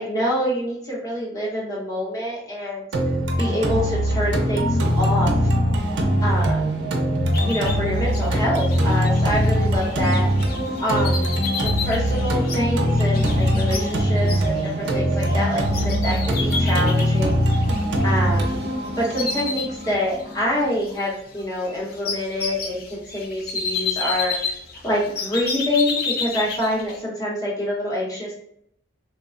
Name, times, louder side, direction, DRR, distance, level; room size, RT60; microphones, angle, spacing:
voice 1, 0.0-2.9 3.4-5.5 6.2-6.6 7.4-10.3 10.8-17.4 18.0-18.7 19.0-24.5 24.8-28.3, left 1 dB, 20° left, -5 dB, 0.8 m, -26 dB
sound 1, 2.9-20.9, equal, 75° right, 0.5 m, -22 dB
sound 2, 7.3-18.7 19.0-20.4 20.7-27.0, left 4 dB, 50° left, 0.4 m, -31 dB
3.1 x 2.0 x 2.4 m, 0.70 s
head